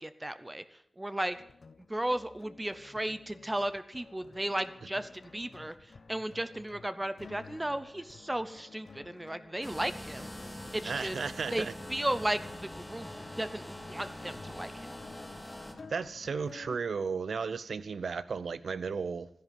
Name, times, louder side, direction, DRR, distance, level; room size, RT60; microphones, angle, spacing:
voice 1, 0.0-1.4 1.9-10.3 10.7-11.2 11.5-14.9, right 1 dB, 15° right, 12 dB, 0.7 m, -35 dB
sound 1, 1.3-16.8, left 4 dB, 55° left, 0.9 m, -53 dB
sound 2, 9.6-15.7, left 1 dB, 15° left, 2.2 m, -44 dB
voice 2, 10.8-11.7 15.9-19.3, right 5 dB, 80° right, 15 dB, 0.7 m, -34 dB
14.0 x 10.5 x 7.5 m, 0.73 s
wide cardioid pair, 120°, 0 cm